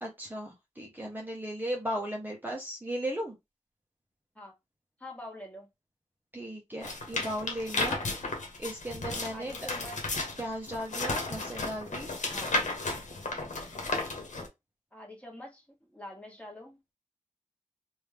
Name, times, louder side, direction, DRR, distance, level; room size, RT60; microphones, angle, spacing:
voice 1, 0.0-3.4 6.3-8.0 8.6-9.6 10.4-12.1, equal, 15° right, 1.0 m, -36 dB
voice 2, 5.0-5.7 9.3-10.0 11.7-11.8 12.3-12.5 14.9-15.6 15.9-16.8, left 1 dB, 10° left, 1.7 m, -45 dB
sound 1, 6.8-14.5, left 2 dB, 80° left, 1.1 m, -34 dB
3.3 x 2.7 x 3.3 m
cardioid pair, 50°, 12 cm